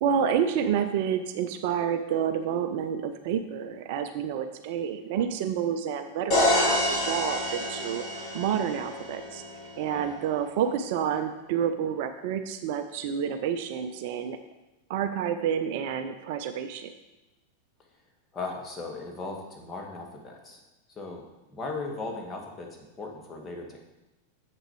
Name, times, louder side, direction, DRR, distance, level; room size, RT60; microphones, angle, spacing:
voice 1, 0.0-8.0 8.3-9.4 9.8-14.4 14.9-16.9, right 8 dB, 50° right, 9 dB, 0.5 m, -29 dB
sound 1, 6.3-10.1, left 1 dB, 35° left, 3.1 m, -28 dB
voice 2, 18.3-20.6 20.9-23.8, left 3 dB, 20° left, 1 dB, 1.7 m, -38 dB
7.6 x 6.6 x 4.6 m, 1.0 s
figure-of-eight pair, 90°, 0 cm